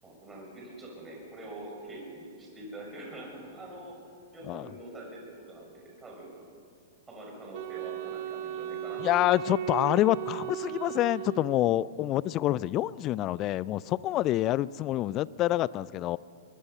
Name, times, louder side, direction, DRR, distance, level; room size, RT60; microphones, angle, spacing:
voice 1, 0.0-4.0 4.3-6.3 7.1-9.2, right 1 dB, 15° right, -2 dB, 6.6 m, -44 dB
Wind instrument woodwind instrument, 7.5-12.0, right 11 dB, 55° right, 1.2 m, -37 dB
voice 2, 9.0-16.2, left 14 dB, 35° left, 21 dB, 0.4 m, -27 dB
22.5 x 22.5 x 5.6 m, 2.4 s
figure-of-eight pair, 105°, 0 cm